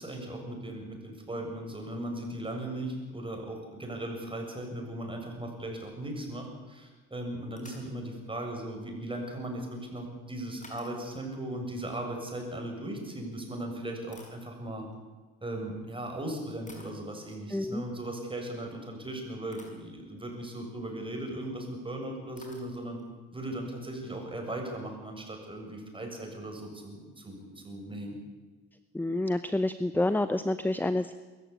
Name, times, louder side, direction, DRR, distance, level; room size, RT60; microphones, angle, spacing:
voice 1, 0.0-14.9 15.4-23.0 23.3-28.2, right 1 dB, 15° right, 2 dB, 7.4 m, -38 dB
sound 1, 7.6-8.0 10.6-11.3 13.0-13.2 13.8-15.0 15.9-16.1 16.7-17.1 18.9-19.0 19.5-19.9 20.4-20.7 21.6-21.7 21.9-22.0 22.3-23.1, left 1 dB, 25° left, 6.3 m, -54 dB
voice 2, 17.5-17.8 28.9-31.1, left 1 dB, 5° left, 12 dB, 0.9 m, -28 dB
22.5 x 14.5 x 10.0 m, 1.3 s
cardioid pair, 90°, 30 cm